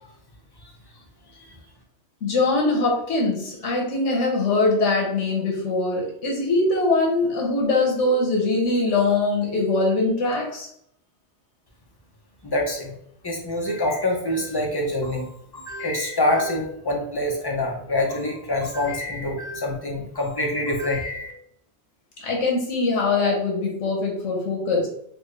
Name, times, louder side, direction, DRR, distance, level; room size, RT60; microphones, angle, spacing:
voice 1, 2.2-10.7 22.2-24.9, left 3 dB, 85° left, -1 dB, 1.2 m, -22 dB
voice 2, 12.4-13.0 13.2-21.3, left 1 dB, 35° left, 0 dB, 0.4 m, -26 dB
4.1 x 2.1 x 3.1 m, 0.70 s
omnidirectional pair, 1.2 m